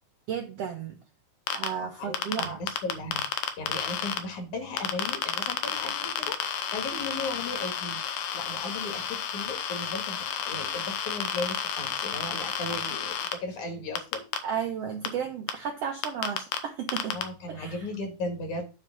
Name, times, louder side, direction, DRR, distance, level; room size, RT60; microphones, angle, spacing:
voice 1, 0.3-1.0 1.5-2.6 14.4-17.2 17.5-17.9, right 7 dB, 70° right, 3 dB, 1.5 m, -33 dB
sound 1, 1.5-1.7 2.1-4.2 4.8-13.3 14.0-14.4 15.1-15.2 15.5-15.6 16.0-16.6 16.9-17.2, left 8 dB, 90° left, 2.5 m, -32 dB
voice 2, 1.8-14.2 17.1-18.7, left 2 dB, 60° left, 4 dB, 3.0 m, -36 dB
9.6 x 3.3 x 6.1 m, 0.32 s
omnidirectional pair, 3.8 m